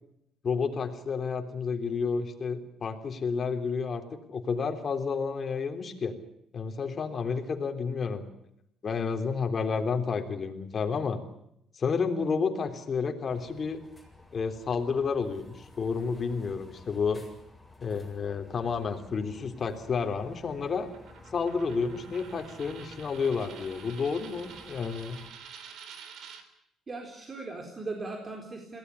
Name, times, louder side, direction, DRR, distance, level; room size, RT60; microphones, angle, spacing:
voice 1, 0.4-4.0 4.3-6.1 6.5-8.3 8.8-11.2 11.7-13.8 14.3-17.2 17.8-20.9 21.3-25.2, left 5 dB, 40° left, 5 dB, 3.5 m, -30 dB
sound 1, 13.2-25.3, left 2 dB, 5° left, 8.0 m, -53 dB
Coin (dropping), 20.9-26.4, right 7 dB, 70° right, 3.4 m, -48 dB
voice 2, 26.9-28.8, right 3 dB, 30° right, 2 dB, 4.1 m, -38 dB
22.5 x 17.5 x 9.9 m, 0.78 s
cardioid pair, 100°, 0 cm